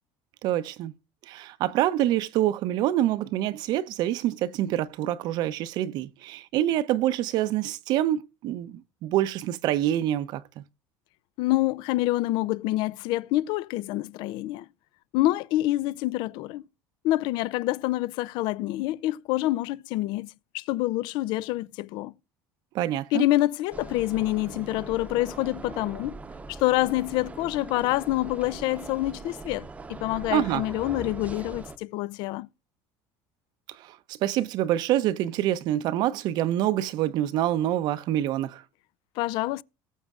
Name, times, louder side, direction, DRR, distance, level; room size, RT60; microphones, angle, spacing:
voice 1, 0.4-0.9 1.2-10.4 22.7-23.2 30.3-30.6 33.7-38.6, right 13 dB, 55° right, 0.7 m, -26 dB
voice 2, 11.4-14.7 15.1-16.6 17.0-22.1 23.1-26.2 26.5-32.5 39.2-39.6, left 17 dB, 65° left, 0.4 m, -27 dB
sound 1, 23.7-31.8, right 3 dB, 15° right, 0.8 m, -41 dB
19.0 x 7.2 x 2.4 m
cardioid pair, 140°, 8 cm